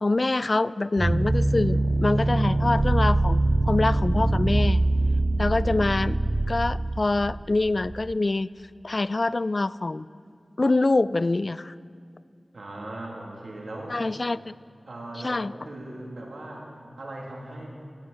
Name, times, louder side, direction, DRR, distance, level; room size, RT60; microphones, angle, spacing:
voice 1, 0.0-3.4 3.6-4.8 5.4-6.2 6.5-8.5 8.8-10.1 10.6-11.7 13.9-14.5 15.2-15.5, left 2 dB, 50° left, 18 dB, 0.3 m, -25 dB
sound 1, 1.0-8.1, right 2 dB, 40° right, 0.4 m, -23 dB
voice 2, 12.5-14.0 14.9-17.7, right 1 dB, 80° right, -2 dB, 2.4 m, -39 dB
16.0 x 15.0 x 4.0 m, 2.3 s
cardioid pair, 40°, 0 cm